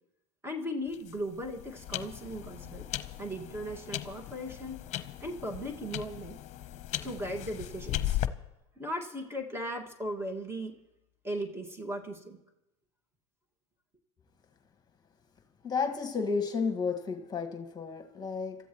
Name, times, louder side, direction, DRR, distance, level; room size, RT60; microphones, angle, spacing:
voice 1, 0.4-2.9 3.2-4.8 5.2-6.4 7.0-8.2 8.8-10.8 11.2-12.4, equal, 15° right, 3 dB, 2.0 m, -37 dB
sound 1, 0.9-8.3, left 13 dB, 45° left, 1.0 m, -37 dB
voice 2, 15.6-18.6, left 5 dB, 25° left, 5 dB, 1.8 m, -32 dB
26.5 x 14.0 x 3.1 m, 0.91 s
hypercardioid pair, 90°, 17 cm